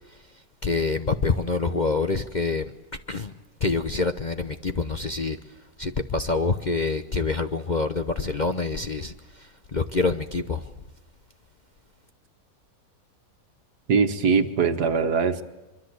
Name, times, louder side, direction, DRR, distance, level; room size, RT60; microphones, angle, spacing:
voice 1, 0.6-2.6 3.1-3.3 3.6-5.4 5.8-10.7, left 3 dB, 35° left, 0.8 m, -26 dB
voice 2, 13.9-15.4, right 5 dB, 75° right, 1.9 m, -21 dB
24.0 x 24.0 x 8.0 m
omnidirectional pair, 1.7 m